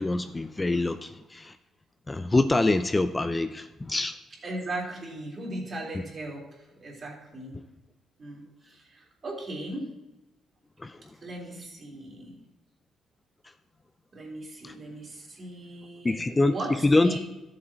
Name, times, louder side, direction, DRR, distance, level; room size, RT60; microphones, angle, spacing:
voice 1, 0.0-1.5 2.1-4.1 10.8-10.9 14.6-14.7 16.0-16.6 16.8-17.2, left 2 dB, 20° left, 9 dB, 0.5 m, -25 dB
voice 2, 4.4-6.5 6.8-7.6 8.2-9.9 11.2-12.3 14.1-17.2, right 1 dB, 40° right, -1 dB, 3.5 m, -37 dB
13.0 x 7.5 x 4.5 m, 1.0 s
cardioid pair, 90°, 0 cm